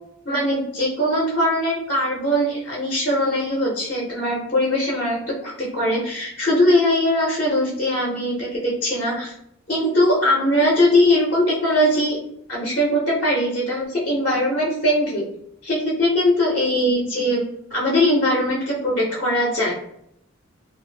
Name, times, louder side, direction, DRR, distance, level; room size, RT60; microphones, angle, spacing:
voice 1, 0.2-9.3 9.7-12.2 12.5-15.2 15.6-19.7, left 1 dB, 45° left, -5 dB, 0.7 m, -21 dB
2.5 x 2.0 x 3.2 m, 0.73 s
head